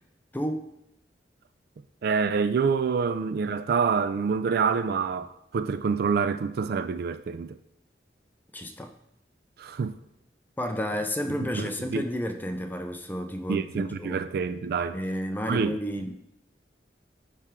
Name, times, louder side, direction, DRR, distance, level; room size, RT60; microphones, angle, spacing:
voice 1, 0.3-0.7 8.5-8.9 10.6-14.2 14.9-16.2, equal, 10° left, 0.5 m, -31 dB
voice 2, 2.0-7.6 9.6-10.0 11.3-12.0 13.5-15.0 15.5-15.8, right 5 dB, 60° right, 0.3 m, -27 dB
9.9 x 3.4 x 3.7 m
head